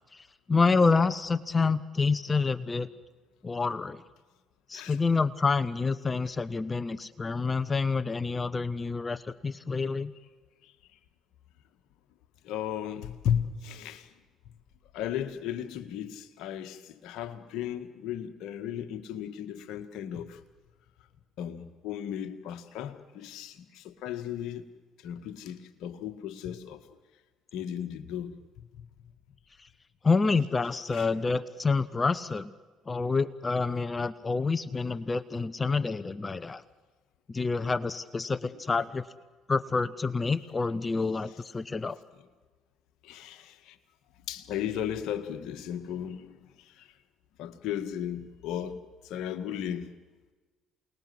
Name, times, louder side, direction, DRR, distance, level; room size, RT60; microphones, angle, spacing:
voice 1, 0.5-2.9 3.4-4.0 4.7-10.1 30.0-32.5 32.9-36.6 37.3-39.0 39.5-42.0, left 4 dB, 30° left, 1.0 m, -28 dB
voice 2, 12.4-14.1 14.9-20.4 21.4-24.6 25.0-26.8 27.5-28.4 30.9-31.1 43.0-43.7 44.3-46.4 47.4-48.8 49.1-49.9, left 9 dB, 70° left, 1.7 m, -35 dB
28.0 x 20.0 x 7.9 m
hypercardioid pair, 60°, 0 cm